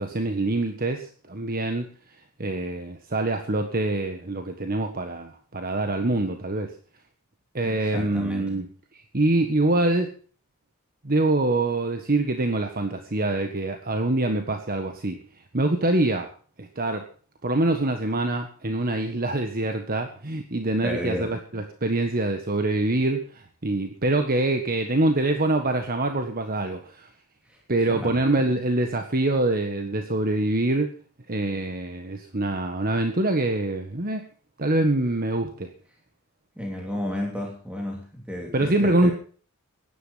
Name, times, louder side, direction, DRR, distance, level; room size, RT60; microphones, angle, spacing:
voice 1, 0.0-1.9 2.4-6.7 7.5-8.7 9.1-10.1 11.0-15.2 15.5-16.3 16.6-17.1 17.4-27.1 27.7-30.9 31.3-34.2 34.6-35.7 38.5-39.1, right 2 dB, 40° right, 6 dB, 1.5 m, -25 dB
voice 2, 7.6-8.5 20.8-21.3 27.5-27.6 27.9-28.2 36.6-39.1, left 1 dB, 5° right, 0 dB, 3.1 m, -32 dB
16.5 x 11.0 x 5.7 m, 0.42 s
head